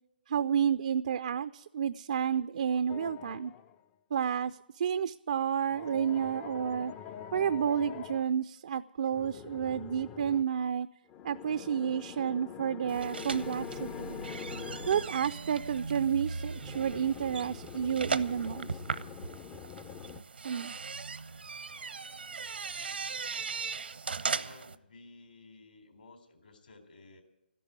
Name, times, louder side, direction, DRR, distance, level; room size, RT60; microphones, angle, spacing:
voice 1, 0.3-3.5 4.1-6.9 7.3-10.9 11.2-14.2 14.9-18.7 20.4-20.8, right 8 dB, 50° right, 12 dB, 0.5 m, -30 dB
sound 1, 2.9-3.8 5.6-8.2 9.1-10.4 11.1-15.2 16.5-20.2, left 8 dB, 20° left, 0.5 m, -44 dB
sound 2, 12.9-24.7, right 5 dB, 80° right, 0.8 m, -38 dB
voice 2, 24.4-27.2, left 3 dB, 65° left, 7 dB, 3.6 m, -55 dB
13.5 x 11.0 x 9.0 m, 0.94 s
hypercardioid pair, 150°, 5 cm